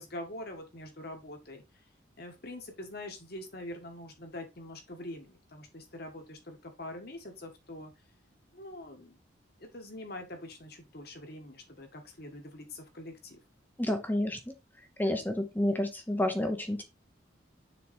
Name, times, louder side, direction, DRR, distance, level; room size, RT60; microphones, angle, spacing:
voice 1, 0.0-1.6 2.2-7.9 8.5-9.2 9.6-13.4, left 1 dB, 50° left, 5 dB, 1.6 m, -44 dB
voice 2, 13.8-14.4 15.0-16.8, left 1 dB, 10° left, 6 dB, 0.8 m, -29 dB
6.9 x 4.0 x 4.2 m, 0.25 s
head